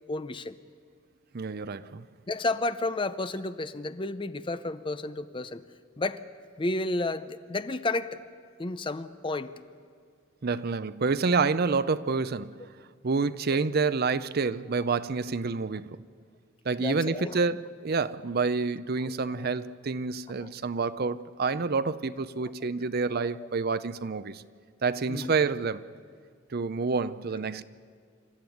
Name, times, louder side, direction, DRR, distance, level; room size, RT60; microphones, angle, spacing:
voice 1, 0.1-0.6 1.8-1.9 2.3-5.6 6.0-6.2 6.6-8.2 8.6-9.5 13.5-13.6 16.8-17.4 19.0-19.5 20.4-20.5 23.3-23.5 25.1-25.3, left 2 dB, 25° left, 0.6 m, -32 dB
voice 2, 1.3-2.0 10.4-12.7 13.0-16.0 16.7-24.4 24.8-25.8 26.5-27.6, right 4 dB, 50° right, 0.6 m, -28 dB
28.0 x 12.5 x 9.3 m
head